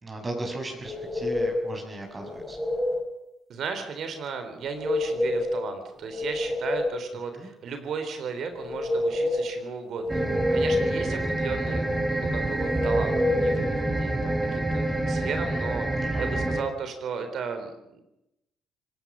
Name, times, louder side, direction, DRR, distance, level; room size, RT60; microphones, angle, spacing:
voice 1, 0.0-2.6 7.3-7.5 16.0-16.3, right 2 dB, 30° right, 2 dB, 6.4 m, -36 dB
sound 1, 0.8-1.7 2.2-3.0 4.6-5.6 6.0-7.1 8.5-9.5 10.0-11.0 12.6-13.6, left 1 dB, 5° left, 6.7 m, -27 dB
voice 2, 3.5-18.0, right 5 dB, 60° right, 7 dB, 3.4 m, -35 dB
sound 2, 10.1-16.6, right 1 dB, 15° right, 3.3 m, -27 dB
25.5 x 19.0 x 6.2 m, 0.87 s
hypercardioid pair, 50°, 0 cm